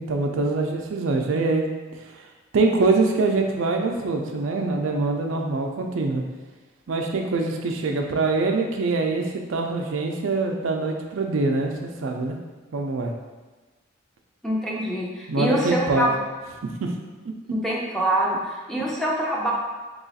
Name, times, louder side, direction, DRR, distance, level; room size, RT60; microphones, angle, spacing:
voice 1, 0.0-1.7 2.5-6.2 6.9-12.4 12.7-13.1 15.3-16.1 16.6-16.9, right 3 dB, 85° right, 2 dB, 0.4 m, -24 dB
voice 2, 14.4-16.1 17.5-19.5, right 1 dB, ahead, -4 dB, 0.5 m, -25 dB
3.0 x 2.4 x 4.0 m, 1.3 s
head